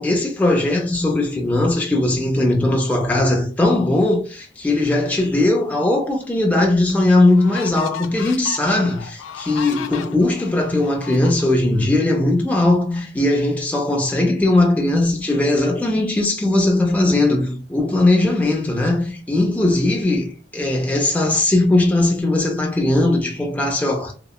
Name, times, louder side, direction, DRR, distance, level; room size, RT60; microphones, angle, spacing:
voice 1, 0.0-24.2, left 2 dB, 10° left, 0.4 m, -19 dB
sound 1, 6.2-6.3 6.9-11.9, left 7 dB, 90° left, 0.3 m, -36 dB
2.8 x 2.1 x 2.2 m
head